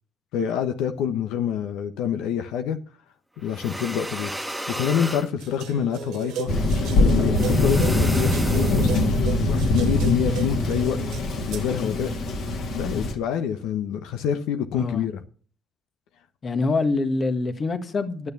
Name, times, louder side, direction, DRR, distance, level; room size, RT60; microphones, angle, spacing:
voice 1, 0.3-2.8 3.4-4.3 4.7-6.5 6.9-11.0 11.5-12.1 12.7-15.2, left 8 dB, 80° left, 1.0 m, -26 dB
sound 1, 3.5-5.3 7.4-9.2, equal, 5° right, 1.2 m, -29 dB
sound 2, 5.4-11.7, right 9 dB, 75° right, 1.5 m, -36 dB
Thunder, 6.5-13.1, left 2 dB, 65° left, 2.3 m, -23 dB
voice 2, 14.7-15.1 16.4-18.3, left 3 dB, 40° left, 1.6 m, -25 dB
11.0 x 6.6 x 7.1 m
supercardioid pair, 80°, 0 cm